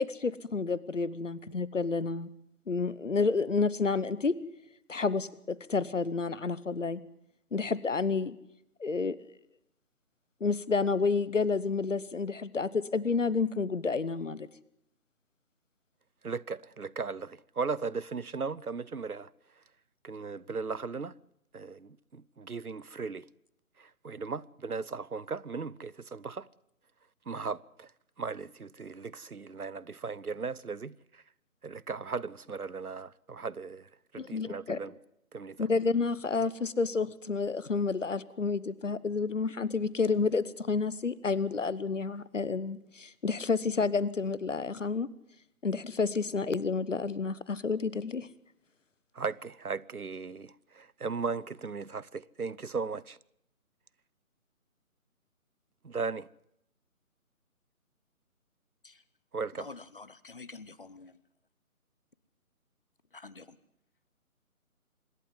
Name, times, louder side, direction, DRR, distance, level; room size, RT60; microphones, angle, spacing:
voice 1, 0.0-2.3 2.7-4.4 4.9-7.0 7.5-8.4 8.8-9.1 10.4-14.5 34.2-34.8 35.6-45.1 45.6-48.3, left 4 dB, 55° left, 1.1 m, -30 dB
voice 2, 16.2-19.3 20.0-21.1 21.5-23.3 23.8-26.5 27.3-27.9 28.2-31.2 31.6-34.9 35.3-35.7 49.1-53.2 55.8-56.3 59.3-59.7, right 4 dB, 85° right, 0.9 m, -37 dB
voice 3, 59.6-61.2 63.1-63.6, left 3 dB, 40° left, 0.9 m, -47 dB
25.5 x 11.5 x 9.6 m
figure-of-eight pair, 150°, 43 cm